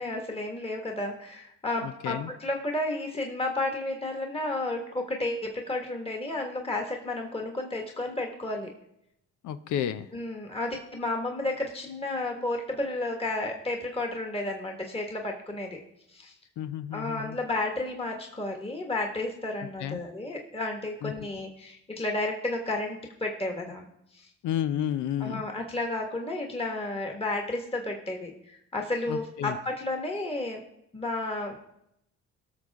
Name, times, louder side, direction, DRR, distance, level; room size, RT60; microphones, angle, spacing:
voice 1, 0.0-8.7 10.1-15.8 16.1-16.3 16.9-23.9 24.1-24.3 25.2-30.6 30.9-31.7, left 2 dB, 20° left, 2 dB, 1.6 m, -32 dB
voice 2, 1.8-2.3 9.4-10.1 16.6-17.4 19.8-20.0 21.0-21.1 24.4-25.4 29.1-29.6, left 10 dB, 80° left, 12 dB, 0.6 m, -31 dB
18.0 x 6.5 x 3.6 m, 0.79 s
cardioid pair, 90°, 30 cm